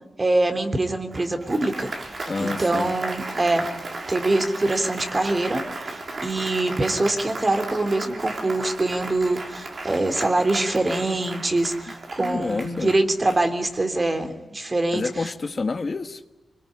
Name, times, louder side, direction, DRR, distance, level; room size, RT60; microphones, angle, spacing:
voice 1, 0.2-1.9 2.4-3.7 4.1-15.3, right 2 dB, 30° right, 3.4 m, -24 dB
Applause, 1.1-13.9, right 2 dB, 55° right, 4.5 m, -35 dB
voice 2, 2.3-2.9 12.2-12.9 14.9-16.3, left 3 dB, 50° left, 1.5 m, -28 dB
25.0 x 21.5 x 9.8 m
cardioid pair, 65°, 0 cm